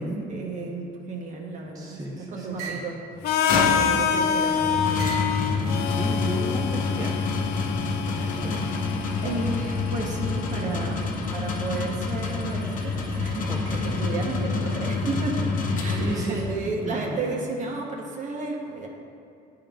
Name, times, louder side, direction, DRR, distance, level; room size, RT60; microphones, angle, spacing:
voice 1, 0.0-3.0 3.7-5.2 7.9-8.0 9.2-13.5 13.8-15.5 15.7-18.9, right 3 dB, 45° right, 0 dB, 1.0 m, -33 dB
sound 1, 1.5-2.0 2.6-2.9 3.7-4.3 5.0-5.4 6.2-6.8, right 3 dB, 90° right, 1.1 m, -40 dB
voice 2, 1.7-2.8 5.3-7.3 8.0-8.7 13.5-13.9 15.9-16.4 16.8-17.4, right 1 dB, 20° right, -3 dB, 0.7 m, -34 dB
Harmonica, 3.2-11.1, left 7 dB, 70° left, 0.4 m, -27 dB
sound 2, 3.2-16.6, left 3 dB, 50° left, 0.8 m, -28 dB
9.6 x 3.8 x 3.5 m, 2.5 s
cardioid pair, 110°, 17 cm